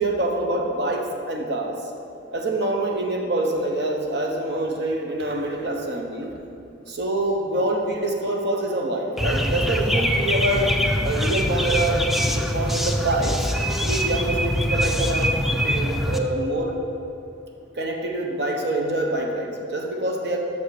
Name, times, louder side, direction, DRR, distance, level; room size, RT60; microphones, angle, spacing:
voice 1, 0.0-1.8 2.3-6.3 6.9-10.7 11.0-13.3 13.8-15.3 15.6-16.7 17.8-20.4, right 1 dB, 65° right, 1 dB, 1.1 m, -25 dB
sound 1, 9.2-16.2, equal, ahead, 0.4 m, -23 dB
8.4 x 6.5 x 6.7 m, 2.7 s
head